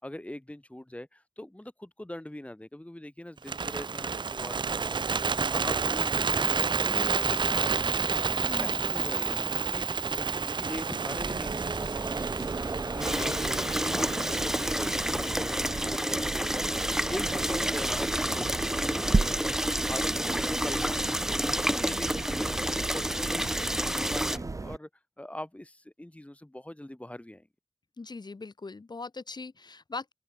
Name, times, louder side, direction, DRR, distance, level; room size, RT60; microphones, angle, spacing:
voice 1, 0.0-9.8 10.1-21.3 21.6-24.9 25.2-27.5, left 1 dB, 15° left, 6.2 m, -42 dB
Bird, 3.4-15.6, right 5 dB, 75° right, 0.9 m, -30 dB
voice 2, 8.4-8.9 21.7-22.0 28.0-30.1, left 3 dB, 60° left, 4.1 m, -40 dB
sound 1, 11.2-24.8, right 3 dB, 45° right, 0.8 m, -34 dB
sound 2, 13.0-24.4, equal, 5° right, 1.2 m, -29 dB
open air
cardioid pair, 45°, 8 cm